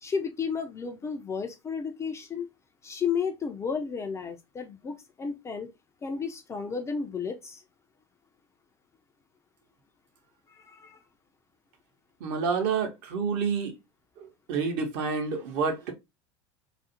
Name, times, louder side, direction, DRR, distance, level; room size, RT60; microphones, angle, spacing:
voice 1, 0.0-2.5 2.8-5.7 6.0-7.6 10.5-11.0, left 6 dB, 20° left, 0.3 m, -33 dB
voice 2, 12.2-13.7 14.2-15.9, right 5 dB, 55° right, 0.7 m, -29 dB
2.4 x 2.0 x 2.7 m
figure-of-eight pair, 75°, 14 cm